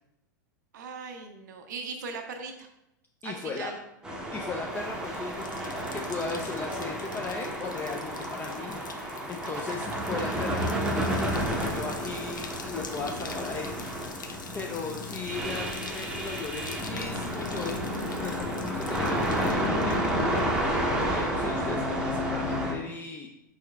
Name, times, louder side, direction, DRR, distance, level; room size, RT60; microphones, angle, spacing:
voice 1, 0.7-2.7 3.2-3.8, right 4 dB, 70° right, 5 dB, 0.5 m, -39 dB
voice 2, 3.2-3.7 4.3-14.2 14.5-17.9 18.2-23.3, left 4 dB, 20° left, 1 dB, 0.4 m, -37 dB
sound 1, 4.0-22.7, equal, 5° right, 0.7 m, -31 dB
Bathtub (filling or washing), 4.6-20.7 21.0-21.5, left 5 dB, 85° left, 0.4 m, -46 dB
4.7 x 4.2 x 2.3 m, 0.87 s
hypercardioid pair, 95°, 10 cm